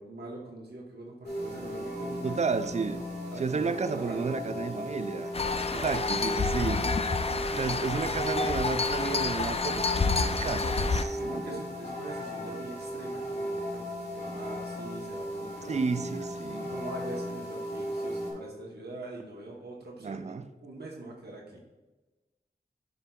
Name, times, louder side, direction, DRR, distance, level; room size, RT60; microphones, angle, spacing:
voice 1, 0.0-2.7 3.3-4.4 5.4-6.0 10.7-13.8 14.1-16.3 16.7-21.8, right 2 dB, 75° right, 1.0 m, -43 dB
sound 1, 1.2-18.3, equal, 80° left, 1.9 m, -36 dB
voice 2, 2.2-3.0 3.4-5.3 5.7-6.8 7.5-11.6 15.7-16.7 20.0-20.4, right 5 dB, 40° right, 0.4 m, -32 dB
sound 2, 5.3-11.0, left 4 dB, 35° left, 0.4 m, -29 dB
9.9 x 5.3 x 2.3 m
wide cardioid pair, 60°, 17 cm